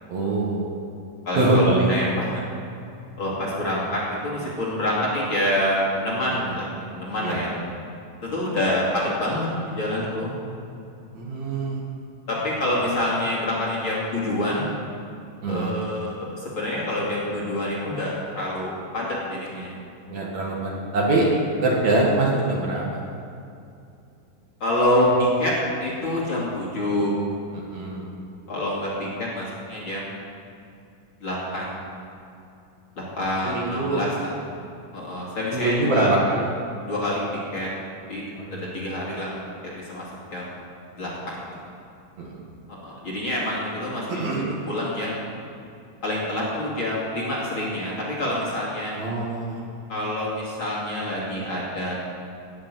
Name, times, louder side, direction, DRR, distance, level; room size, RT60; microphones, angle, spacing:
voice 1, 0.1-0.7 1.4-1.9 7.2-7.5 11.1-11.9 15.4-15.7 20.1-21.3 21.6-23.0 27.5-28.0 33.4-34.0 35.5-36.4 38.4-38.8 41.0-41.2 42.2-42.4 44.1-44.4 48.9-49.7, right 2 dB, 55° right, -3 dB, 3.0 m, -24 dB
voice 2, 1.2-2.4 3.2-7.5 8.2-10.3 12.3-14.7 15.5-19.7 24.6-25.5 25.8-27.1 28.5-30.0 31.2-31.7 33.2-34.3 34.9-36.1 36.9-37.2 37.5-37.7 38.1-38.2 38.5-40.5 41.0-41.4 42.7-45.2 46.0-48.9 49.9-51.9, left 1 dB, 35° left, -6 dB, 3.0 m, -27 dB
18.5 x 6.7 x 7.7 m, 2.6 s
omnidirectional pair, 4.1 m